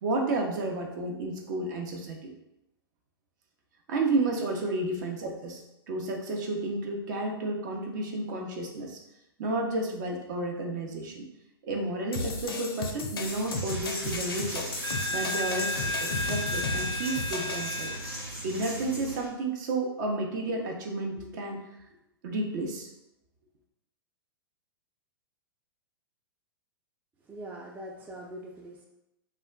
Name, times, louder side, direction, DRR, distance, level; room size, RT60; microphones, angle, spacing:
voice 1, 0.0-2.3 3.9-9.0 9.4-11.3 11.6-14.7 15.1-17.9 18.4-21.6 22.2-22.9, right 2 dB, 50° right, 1 dB, 0.6 m, -31 dB
sound 1, 12.1-17.7, left 3 dB, 75° left, 0.4 m, -35 dB
Coin (dropping), 13.3-19.3, equal, 85° right, 1.3 m, -34 dB
voice 2, 27.2-28.8, right 1 dB, 15° right, -2 dB, 0.3 m, -42 dB
2.2 x 2.1 x 3.7 m, 0.87 s
figure-of-eight pair, 105°, 12 cm